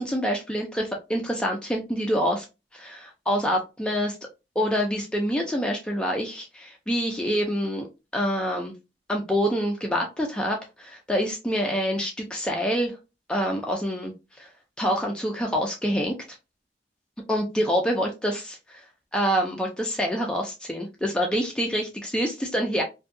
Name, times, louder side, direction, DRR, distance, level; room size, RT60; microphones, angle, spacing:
voice 1, 0.0-2.4 2.7-4.2 4.6-7.9 8.1-8.7 9.1-12.9 13.3-14.1 14.4-14.5 14.8-16.1 17.3-18.8 19.1-22.8, equal, 5° left, 1 dB, 0.3 m, -26 dB
2.6 x 2.3 x 2.5 m, 0.26 s
head